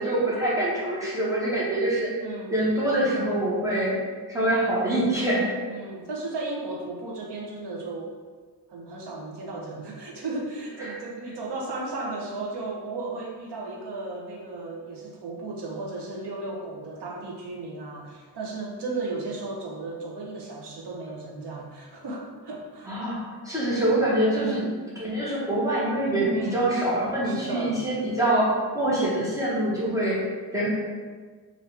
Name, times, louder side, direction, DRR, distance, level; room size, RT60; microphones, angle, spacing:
voice 1, 0.0-2.1 2.5-3.9 4.3-5.5 22.9-23.2 23.4-24.6 25.0-30.2 30.5-30.7, right 1 dB, 10° right, -7 dB, 1.2 m, -25 dB
voice 2, 2.2-2.6 5.7-8.1 8.7-23.0 24.4-24.7 26.3-26.7 27.2-27.8, right 3 dB, 80° right, -1 dB, 0.9 m, -35 dB
4.7 x 2.7 x 3.3 m, 1.5 s
wide cardioid pair, 135°, 40 cm